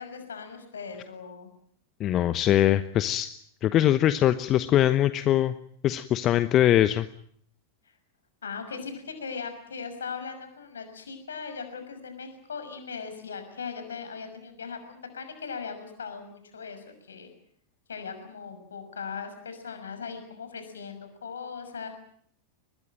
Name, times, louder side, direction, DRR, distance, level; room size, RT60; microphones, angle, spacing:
voice 1, 0.0-1.5 8.4-17.3 17.9-21.9, left 5 dB, 70° left, 8 dB, 6.2 m, -39 dB
voice 2, 2.0-3.3 3.6-5.5 5.8-7.1, left 12 dB, 30° left, 13 dB, 1.0 m, -22 dB
23.5 x 20.5 x 9.0 m, 0.64 s
figure-of-eight pair, 90°, 0 cm